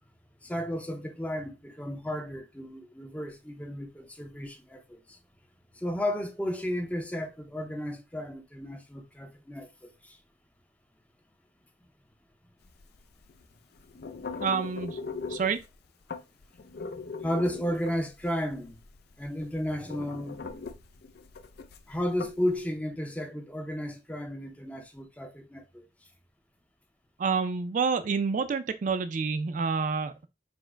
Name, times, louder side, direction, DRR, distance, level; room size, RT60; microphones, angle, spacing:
voice 1, 0.4-5.2 5.8-10.2 17.2-18.8 19.2-20.4 21.9-25.8, equal, 10° left, 0.5 m, -33 dB
sound 1, 12.6-22.6, left 4 dB, 60° left, 0.5 m, -41 dB
voice 2, 14.4-15.0 15.3-15.6 27.2-30.1, right 5 dB, 45° right, 0.4 m, -28 dB
4.3 x 2.1 x 4.4 m
head